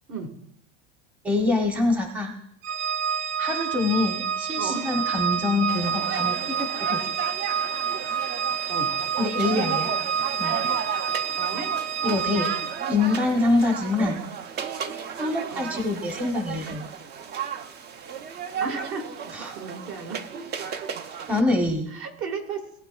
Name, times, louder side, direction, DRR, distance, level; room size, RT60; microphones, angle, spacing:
voice 1, 1.2-2.3 3.4-7.0 9.2-9.9 10.4-10.6 12.0-12.5 12.9-14.3 15.2-16.8 19.3-19.5 21.3-21.9, left 2 dB, 5° right, 3 dB, 0.8 m, -25 dB
Organ, 2.6-13.0, right 7 dB, 90° right, 0.6 m, -28 dB
voice 2, 4.5-4.9 8.7-8.9 11.3-11.7 14.0-14.2 15.5-15.7 18.6-20.9 21.9-22.8, right 4 dB, 55° right, 5 dB, 1.7 m, -35 dB
sound 1, 5.7-21.4, right 7 dB, 30° right, 0.5 m, -34 dB
18.0 x 8.8 x 2.3 m, 0.74 s
supercardioid pair, 145°, 35 cm